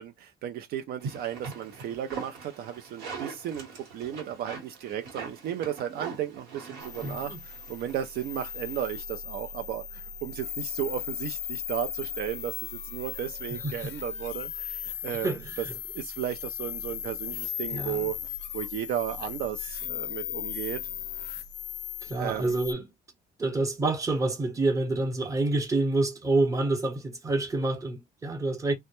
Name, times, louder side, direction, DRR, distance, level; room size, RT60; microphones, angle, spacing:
voice 1, 0.0-15.3 15.6-15.7 15.9-18.2 18.5-20.9 22.2-22.6, right 10 dB, 65° right, 0.4 m, -34 dB
sound 1, 1.0-9.0, right 5 dB, 80° right, 1.1 m, -42 dB
sound 2, 6.8-22.7, left 9 dB, 90° left, 0.4 m, -37 dB
voice 2, 7.0-7.4 13.6-13.9 15.2-15.7 17.7-18.1 22.0-22.9 23.4-28.7, right 2 dB, 20° right, 0.8 m, -28 dB
2.2 x 2.0 x 2.9 m
cardioid pair, 110°, 17 cm